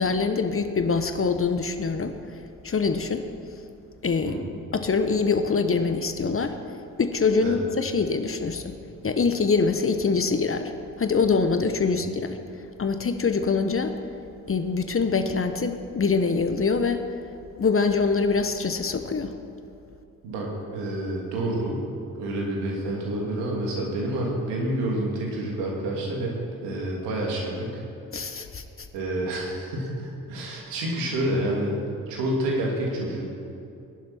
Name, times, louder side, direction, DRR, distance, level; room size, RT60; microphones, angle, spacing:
voice 1, 0.0-2.1 2.6-3.3 4.0-4.4 4.7-6.6 7.0-8.8 9.0-10.7 11.0-12.4 12.8-14.0 14.5-17.0 17.6-19.3 28.1-28.9, left 4 dB, 30° left, 8 dB, 1.2 m, -24 dB
voice 2, 20.2-21.8 22.1-26.4 26.6-27.8 28.9-31.8 32.1-33.2, right 1 dB, 75° right, -2 dB, 3.0 m, -28 dB
21.0 x 11.5 x 4.4 m, 2.7 s
hypercardioid pair, 40°, 43 cm